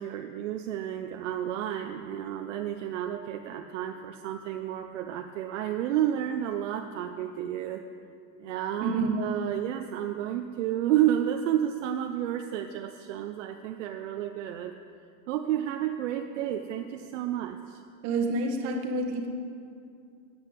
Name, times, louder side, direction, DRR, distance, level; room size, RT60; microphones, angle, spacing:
voice 1, 0.0-7.8 8.4-14.7 15.3-17.8, right 11 dB, 60° right, 5 dB, 0.8 m, -31 dB
voice 2, 8.8-9.3 18.0-19.3, right 2 dB, 35° right, 3 dB, 1.6 m, -28 dB
13.5 x 8.1 x 8.2 m, 2.4 s
supercardioid pair, 170°, 42 cm